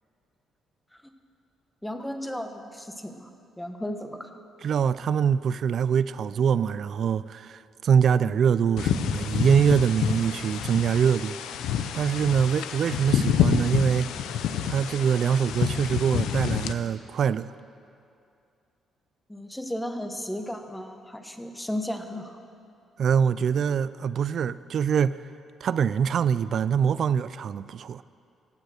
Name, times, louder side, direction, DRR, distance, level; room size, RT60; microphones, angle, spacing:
voice 1, 1.8-3.3 3.6-4.3 8.2-8.3 19.3-22.4, left 1 dB, 5° left, 7 dB, 1.0 m, -34 dB
voice 2, 4.6-11.4 11.9-14.1 14.7-17.5 23.0-25.2 25.6-28.0, right 7 dB, 60° right, 16 dB, 0.3 m, -24 dB
sound 1, 8.8-16.7, left 9 dB, 85° left, 0.6 m, -28 dB
15.5 x 9.0 x 6.5 m, 2.5 s
cardioid pair, 90°, 0 cm